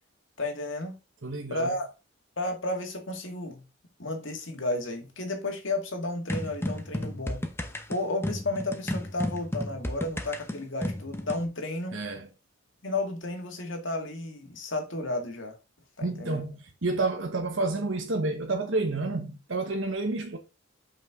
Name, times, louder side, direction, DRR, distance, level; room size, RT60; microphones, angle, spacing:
voice 1, 0.4-1.0 1.5-1.9 2.4-3.6 4.0-7.4 7.9-12.0 12.8-15.6 16.0-16.4, left 2 dB, 65° left, 2.0 m, -32 dB
voice 2, 1.2-1.8 11.9-12.3 16.0-20.4, right 3 dB, 65° right, 1.1 m, -30 dB
sound 1, 6.3-11.4, left 1 dB, 10° left, 0.8 m, -33 dB
7.2 x 5.6 x 3.7 m
head